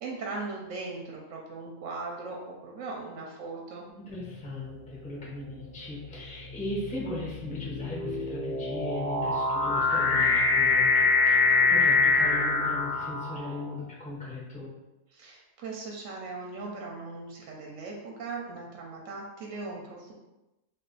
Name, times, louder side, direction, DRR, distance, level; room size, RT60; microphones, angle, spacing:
voice 1, 0.0-3.8 15.1-20.1, right 3 dB, 70° right, -1 dB, 0.8 m, -39 dB
voice 2, 4.0-14.7, left 2 dB, 10° left, -5 dB, 0.3 m, -38 dB
sound 1, 4.2-4.6 5.4-13.6, left 4 dB, 85° left, 0.4 m, -25 dB
2.4 x 2.4 x 3.7 m, 0.98 s
omnidirectional pair, 1.6 m